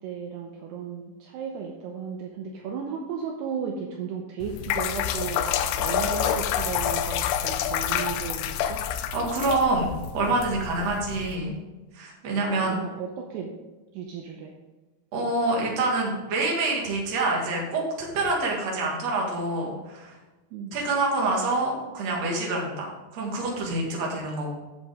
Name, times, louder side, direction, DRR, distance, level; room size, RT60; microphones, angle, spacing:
voice 1, 0.0-8.9 12.5-13.5 13.9-14.5 20.5-20.8, right 6 dB, 85° right, 1 dB, 2.4 m, -35 dB
sound 1, 4.4-11.4, left 9 dB, 80° left, 3.0 m, -28 dB
voice 2, 9.1-11.5 11.9-12.8 15.1-20.2 20.7-24.5, right 2 dB, 50° right, -2 dB, 2.1 m, -26 dB
10.5 x 7.5 x 3.6 m, 1.2 s
omnidirectional pair, 5.9 m